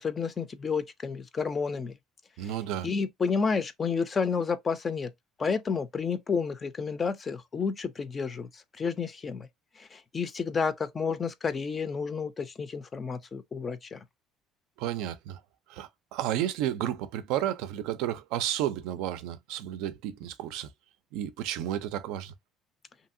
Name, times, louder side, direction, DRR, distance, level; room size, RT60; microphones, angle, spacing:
voice 1, 0.0-2.0 2.4-2.5 2.8-5.1 5.4-9.5 9.8-14.0, left 5 dB, 25° left, 0.4 m, -30 dB
voice 2, 2.4-2.9 14.8-15.4 15.7-20.7 21.1-22.3, right 12 dB, 90° right, 0.4 m, -32 dB
2.7 x 2.7 x 2.5 m
cardioid pair, 155°, 0 cm